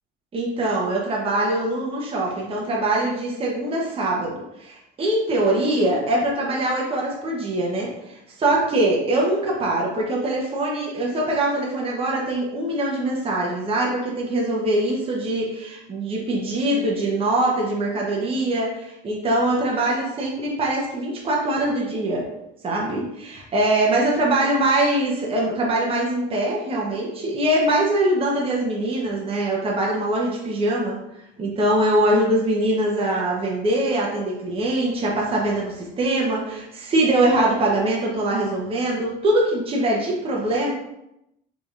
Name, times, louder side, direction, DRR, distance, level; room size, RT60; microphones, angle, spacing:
voice 1, 0.3-22.3 22.6-31.0 31.4-40.7, right 1 dB, 30° right, -3 dB, 0.8 m, -23 dB
3.9 x 3.4 x 2.4 m, 0.86 s
cardioid pair, 125°, 19 cm